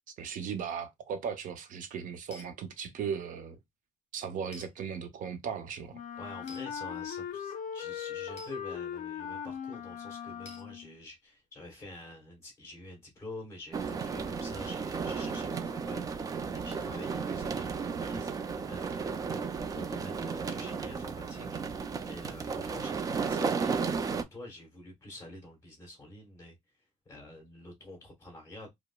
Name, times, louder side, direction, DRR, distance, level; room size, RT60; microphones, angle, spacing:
voice 1, 0.2-3.6 4.1-6.0, right 7 dB, 75° right, 0.8 m, -37 dB
sound 1, 2.3-2.5 4.5-4.7 6.5-6.7 8.4-8.5 10.4-10.7, left 2 dB, 50° left, 1.3 m, -49 dB
Wind instrument woodwind instrument, 5.9-11.0, left 8 dB, 70° left, 0.6 m, -39 dB
voice 2, 6.2-26.6 27.1-28.7, left 1 dB, 20° left, 1.8 m, -48 dB
sound 2, 13.7-24.2, right 5 dB, 25° right, 0.3 m, -34 dB
5.0 x 2.0 x 2.2 m
cardioid pair, 180°, 14 cm